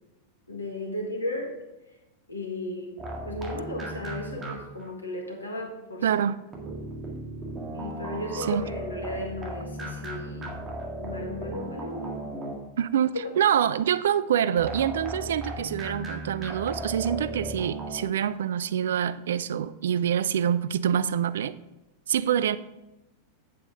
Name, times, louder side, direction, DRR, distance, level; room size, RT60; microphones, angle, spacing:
voice 1, 0.5-1.6 2.3-6.1 7.7-10.6 11.0-12.3 13.1-13.3, left 1 dB, 80° left, 1.7 m, -35 dB
sound 1, 3.0-4.9 6.5-12.9 14.6-18.1, right 1 dB, 20° right, 1.8 m, -36 dB
voice 2, 6.0-6.4 8.3-8.6 12.8-21.6 22.1-22.6, right 9 dB, 60° right, 0.3 m, -26 dB
8.2 x 7.6 x 3.8 m
figure-of-eight pair, 90°, 0 cm